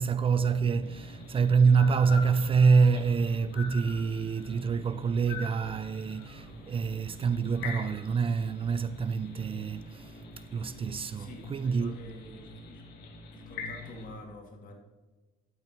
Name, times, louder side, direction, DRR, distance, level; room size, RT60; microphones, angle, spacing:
voice 1, 0.0-10.2 10.5-12.0, right 5 dB, 35° right, 0.4 m, -26 dB
sound 1, 0.6-14.1, equal, 30° left, 2.1 m, -49 dB
sound 2, 0.8-14.1, left 5 dB, 80° left, 1.8 m, -46 dB
voice 2, 11.1-12.9 13.3-14.8, left 1 dB, 55° left, 2.2 m, -47 dB
12.0 x 8.6 x 3.0 m
cardioid pair, 110°, 17 cm